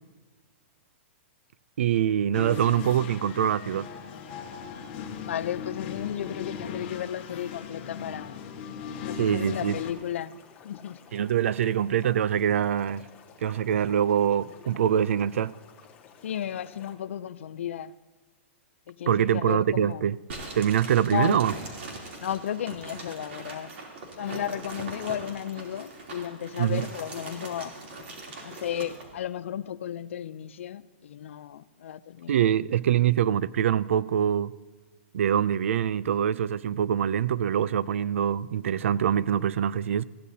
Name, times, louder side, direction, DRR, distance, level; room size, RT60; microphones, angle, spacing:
voice 1, 1.8-3.9 9.2-9.8 11.1-13.1 13.4-15.5 19.1-20.2 20.5-21.5 26.6-26.9 32.3-34.5 35.1-40.0, right 9 dB, 90° right, 0.4 m, -24 dB
sound 1, 2.3-9.9, left 7 dB, 35° left, 1.5 m, -38 dB
voice 2, 5.2-8.4 9.0-10.4 10.6-11.0 16.2-17.9 18.9-20.1 21.1-21.4 22.2-23.7 24.2-27.7 28.4-32.4, left 10 dB, 80° left, 0.5 m, -34 dB
sound 2, 9.5-17.0, left 7 dB, 20° left, 1.2 m, -53 dB
sound 3, 20.3-29.1, right 2 dB, 65° right, 3.1 m, -41 dB
20.0 x 15.5 x 2.8 m
supercardioid pair, 170°, 7 cm